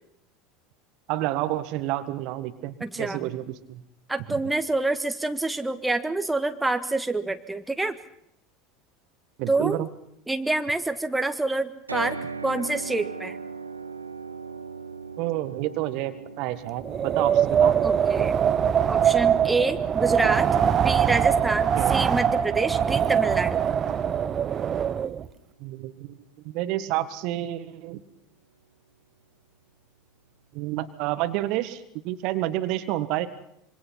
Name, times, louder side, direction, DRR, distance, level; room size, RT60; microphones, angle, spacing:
voice 1, 1.1-3.8 4.3-4.4 9.4-9.9 15.2-17.8 21.7-22.0 25.6-26.2 26.4-28.0 30.5-33.3, right 15 dB, 50° right, 11 dB, 1.6 m, -29 dB
voice 2, 2.8-3.3 4.1-8.0 9.5-9.9 10.3-13.4 17.8-18.4 18.9-20.5 20.8-23.6, right 2 dB, 10° right, 8 dB, 1.6 m, -27 dB
sound 1, 11.9-26.0, right 4 dB, 85° right, 1.3 m, -41 dB
Wind, 16.8-25.3, right 8 dB, 30° right, 1.1 m, -22 dB
26.5 x 24.5 x 5.8 m, 0.73 s
figure-of-eight pair, 75°, 0 cm